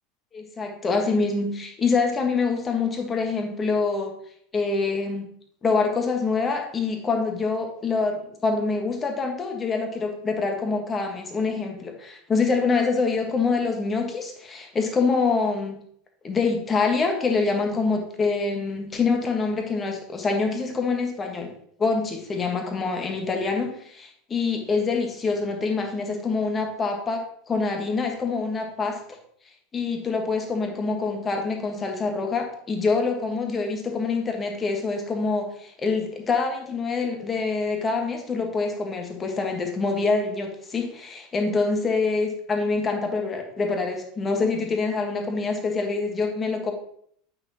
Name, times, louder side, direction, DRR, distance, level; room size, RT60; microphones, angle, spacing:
voice 1, 0.3-4.1 4.5-5.3 5.6-15.8 16.2-21.5 21.8-29.0 29.7-46.7, left 4 dB, 25° left, 3 dB, 1.6 m, -25 dB
8.7 x 6.2 x 3.0 m, 0.65 s
figure-of-eight pair, 80°, 0 cm